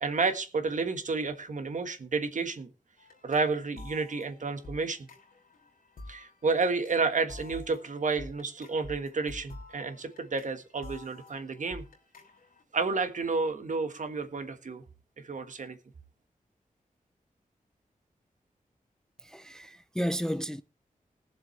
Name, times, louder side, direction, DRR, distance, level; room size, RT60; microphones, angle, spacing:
voice 1, 0.0-2.7 3.2-5.1 6.1-11.8 12.7-14.8 15.2-15.8, right 4 dB, 60° right, 1.5 m, -31 dB
sound 1, 3.0-12.6, left 2 dB, 85° left, 3.4 m, -49 dB
voice 2, 19.2-20.6, equal, 5° left, 0.4 m, -33 dB
20.5 x 7.2 x 3.2 m
wide cardioid pair, 95°, 15 cm